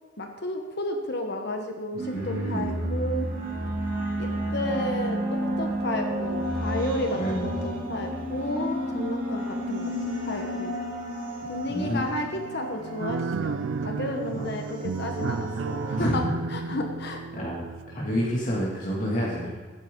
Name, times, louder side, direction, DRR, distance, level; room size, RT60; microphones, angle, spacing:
voice 1, 0.2-3.3 4.2-10.7 11.5-16.2 16.5-17.2, left 1 dB, 60° left, 3 dB, 1.3 m, -32 dB
voice 2, 2.0-2.7 7.1-7.5 11.7-12.1 14.3-14.4 16.0-16.1 16.7-16.8 17.3-19.5, equal, 45° left, -6 dB, 2.6 m, -29 dB
sound 1, 2.0-16.1, equal, 45° right, 2.4 m, -32 dB
sound 2, 13.0-18.3, right 5 dB, 75° right, 0.4 m, -32 dB
15.0 x 9.7 x 3.9 m, 1.4 s
head